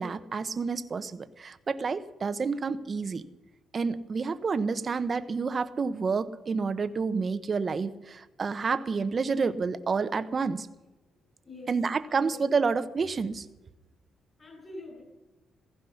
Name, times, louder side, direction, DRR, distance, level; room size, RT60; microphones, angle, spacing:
voice 1, 0.0-3.2 3.7-10.7 11.7-13.4, right 4 dB, 40° right, 12 dB, 0.9 m, -29 dB
voice 2, 11.4-12.8 14.4-15.0, left 2 dB, 30° left, 0 dB, 6.1 m, -46 dB
15.5 x 15.0 x 5.8 m, 1.0 s
cardioid pair, 90°, 0 cm